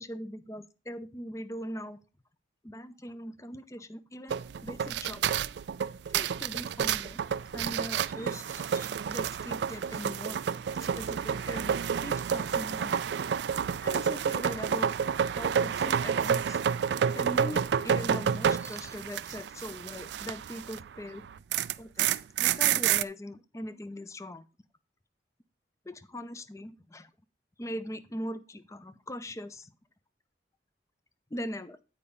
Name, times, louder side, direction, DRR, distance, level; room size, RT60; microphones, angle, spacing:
voice 1, 0.0-2.0 2.6-5.4 6.1-7.2 7.5-10.4 10.8-13.0 13.8-14.9 15.3-16.7 17.1-21.3 21.8-24.4 25.9-27.1 27.6-29.7 31.3-31.8, equal, 15° left, 13 dB, 0.6 m, -41 dB
sound 1, 4.3-20.9 21.2-23.0, right 8 dB, 80° right, 0.4 m, -29 dB
8.9 x 4.9 x 5.4 m, 0.32 s
head